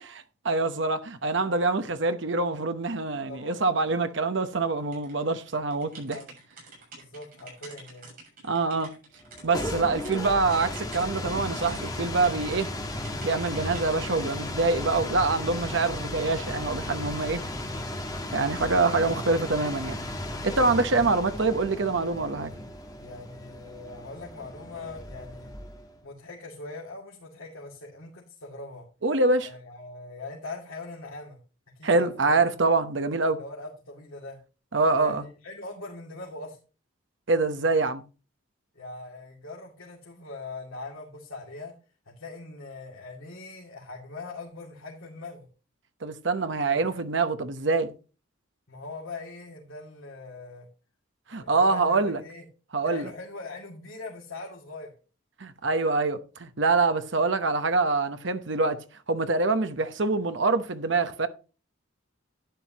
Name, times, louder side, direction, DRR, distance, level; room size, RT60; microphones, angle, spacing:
voice 1, 0.0-6.2 8.4-8.9 9.4-12.7 13.2-17.4 18.3-20.0 20.4-22.5 29.0-29.5 31.8-33.4 34.7-35.2 37.3-38.0 46.0-47.9 51.3-52.2 52.7-53.1 55.4-61.3, right 3 dB, 65° right, 0.9 m, -25 dB
voice 2, 3.3-3.6 4.1-4.2 6.1-6.3 7.0-8.1 20.9-21.3 23.0-25.5 26.0-28.9 29.4-31.4 31.7-32.4 33.3-34.4 35.0-36.6 38.7-41.7 42.1-45.5 46.7-46.8 48.7-50.7 51.4-52.4 52.8-54.9, left 3 dB, 90° left, 2.5 m, -41 dB
sound 1, 4.9-10.2 10.5-12.6 13.0-13.9, right 3 dB, 45° right, 6.6 m, -49 dB
sound 2, 9.2-26.0, left 1 dB, 20° left, 1.4 m, -35 dB
11.5 x 9.4 x 2.9 m
head